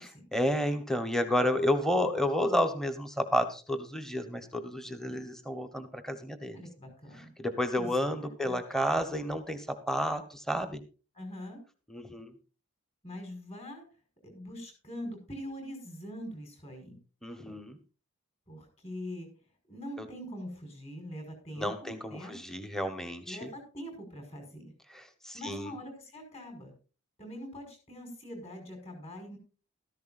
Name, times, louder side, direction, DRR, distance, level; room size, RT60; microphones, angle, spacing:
voice 1, 0.0-6.6 7.2-10.8 11.9-12.3 17.2-17.8 20.0-20.1 21.6-23.5 24.9-25.7, equal, ahead, 8 dB, 1.1 m, -31 dB
voice 2, 6.5-7.3 7.7-8.1 8.4-8.6 11.2-11.6 13.0-13.8 14.2-17.0 18.5-19.3 19.7-22.4 23.3-24.7 25.3-26.7 27.2-29.4, equal, 30° left, 4 dB, 5.1 m, -43 dB
15.5 x 13.5 x 2.6 m, 0.34 s
head